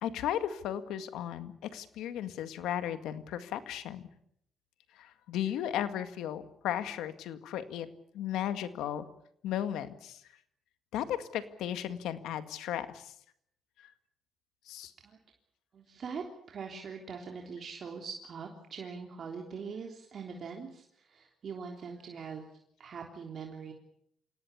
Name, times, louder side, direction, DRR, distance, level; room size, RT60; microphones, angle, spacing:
voice 1, 0.0-4.0 5.0-7.9 8.1-9.1 9.4-10.2 10.9-13.1 13.8-13.9 14.7-14.9, left 10 dB, 90° left, 10 dB, 1.9 m, -35 dB
voice 2, 15.7-22.5 22.8-23.7, right 5 dB, 55° right, 1 dB, 3.5 m, -42 dB
27.0 x 18.0 x 8.6 m, 0.71 s
cardioid pair, 90°, 0 cm